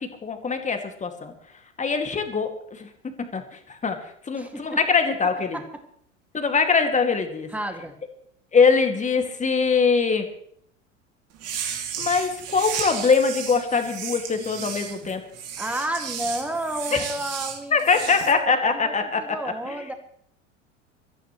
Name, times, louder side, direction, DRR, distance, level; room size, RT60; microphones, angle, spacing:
voice 1, 0.0-1.3 1.8-2.9 3.2-4.0 4.3-5.6 6.3-7.5 8.5-10.3 12.0-15.2 16.9-17.0 17.7-19.2 19.7-19.8, left 5 dB, 20° left, 6 dB, 2.2 m, -22 dB
voice 2, 4.4-4.8 5.5-5.7 7.5-7.9 15.6-19.9, right 1 dB, 5° right, 5 dB, 2.2 m, -31 dB
sound 1, 11.3-18.3, right 8 dB, 40° right, 2.6 m, -34 dB
24.0 x 14.0 x 3.2 m, 0.65 s
figure-of-eight pair, 75°, 37 cm